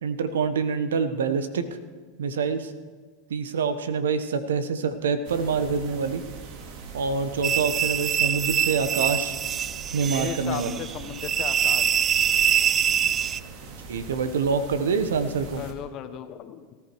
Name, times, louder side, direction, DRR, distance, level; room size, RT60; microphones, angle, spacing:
voice 1, 0.0-1.7 2.2-2.7 3.3-6.2 6.9-9.4 9.9-10.8 13.9-15.6, right 5 dB, 85° right, 11 dB, 1.2 m, -26 dB
sound 1, 5.2-15.7, right 4 dB, 60° right, 2.3 m, -41 dB
sound 2, 7.4-13.4, right 9 dB, 30° right, 0.4 m, -24 dB
voice 2, 10.1-11.9 15.6-16.8, left 10 dB, 45° left, 10 dB, 1.3 m, -36 dB
19.0 x 13.5 x 4.7 m, 1.5 s
hypercardioid pair, 105°, 0 cm